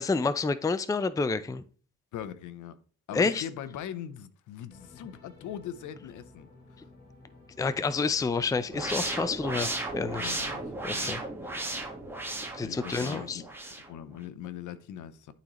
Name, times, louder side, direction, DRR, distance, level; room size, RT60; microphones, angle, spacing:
voice 1, 0.0-1.6 3.1-3.4 7.6-10.4 10.8-11.2 12.6-13.4, left 4 dB, 10° left, 0.5 m, -29 dB
voice 2, 2.1-2.8 3.1-6.5 10.2-11.2 11.8-11.9 12.6-13.4 13.9-15.3, left 10 dB, 80° left, 0.8 m, -41 dB
sound 1, 4.7-10.2, left 2 dB, 35° left, 3.2 m, -55 dB
sound 2, 8.7-13.9, right 2 dB, 5° right, 1.6 m, -35 dB
11.5 x 4.0 x 3.0 m
cardioid pair, 90°, 30 cm